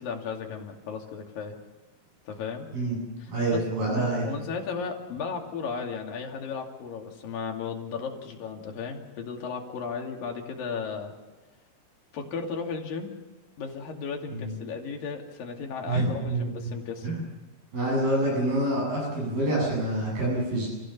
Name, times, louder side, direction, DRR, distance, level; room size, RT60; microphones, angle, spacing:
voice 1, 0.0-1.6 2.3-2.7 3.2-11.1 12.1-13.1 13.6-17.1, left 5 dB, 80° left, 2 dB, 4.2 m, -35 dB
voice 2, 3.3-4.3 14.3-14.5 15.9-16.7 17.0-17.2 17.7-20.7, right 1 dB, 85° right, -3 dB, 9.9 m, -27 dB
28.5 x 17.0 x 7.2 m, 1.2 s
omnidirectional pair, 4.0 m